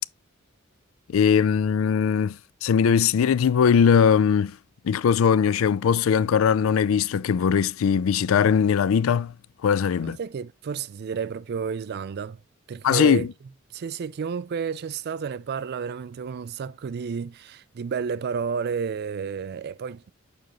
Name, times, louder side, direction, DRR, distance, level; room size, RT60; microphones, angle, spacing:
voice 1, 1.1-4.6 4.8-9.3 9.6-10.2 12.8-13.3, left 7 dB, 75° left, 0.4 m, -20 dB
voice 2, 10.0-12.4 12.7-13.3 13.7-20.1, right 6 dB, 50° right, 0.4 m, -31 dB
6.8 x 5.1 x 3.0 m
head